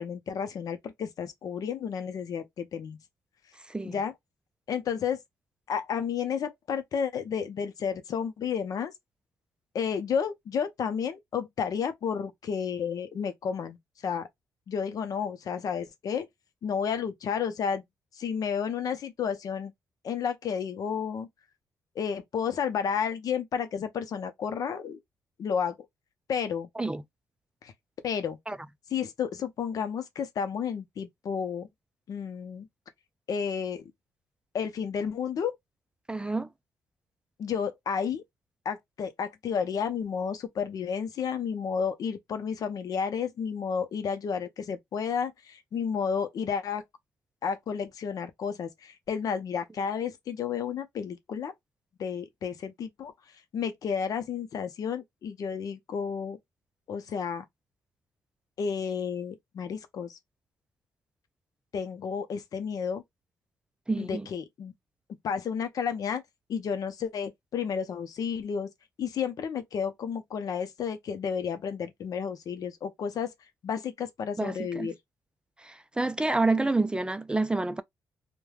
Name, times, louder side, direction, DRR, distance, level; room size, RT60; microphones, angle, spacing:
voice 1, 0.0-3.0 3.8-4.1 4.7-5.2 5.7-8.9 9.7-13.8 14.0-14.3 14.7-16.3 16.6-17.8 18.1-19.7 20.0-21.3 22.0-25.0 25.4-25.8 26.3-26.7 27.6-27.7 28.0-28.4 28.9-31.7 32.1-32.7 33.3-33.9 34.5-35.6 37.4-38.2 38.6-46.8 47.4-51.5 52.0-53.1 53.5-56.4 56.9-57.4 58.6-60.2 61.7-63.0 64.0-64.7 65.2-66.2 66.5-68.7 69.0-73.3 73.6-75.0, left 7 dB, 65° left, 0.6 m, -31 dB
voice 2, 36.1-36.5 63.9-64.3 74.4-74.9 75.6-77.8, right 2 dB, 15° right, 0.3 m, -28 dB
3.1 x 2.2 x 2.3 m
supercardioid pair, 65°, 7 cm